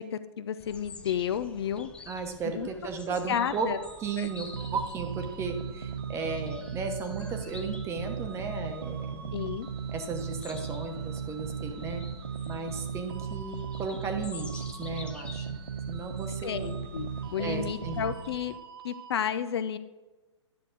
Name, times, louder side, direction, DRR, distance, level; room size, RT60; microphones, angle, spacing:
voice 1, 0.0-1.9 2.5-2.7 3.3-3.8 4.2-4.3 9.3-9.7 16.4-18.5 18.8-19.8, left 9 dB, 55° left, 12 dB, 0.6 m, -32 dB
sound 1, 0.6-18.6, left 3 dB, 5° left, 0.6 m, -50 dB
voice 2, 2.1-3.7 4.0-9.4 9.9-12.0 12.5-15.6 15.9-16.7 17.3-18.0, right 4 dB, 15° right, 6 dB, 1.0 m, -35 dB
sound 2, 3.3-19.2, right 6 dB, 50° right, 0.8 m, -50 dB
sound 3, 4.5-18.2, right 6 dB, 80° right, 0.6 m, -37 dB
10.5 x 6.6 x 3.9 m, 1.2 s
figure-of-eight pair, 125°, 16 cm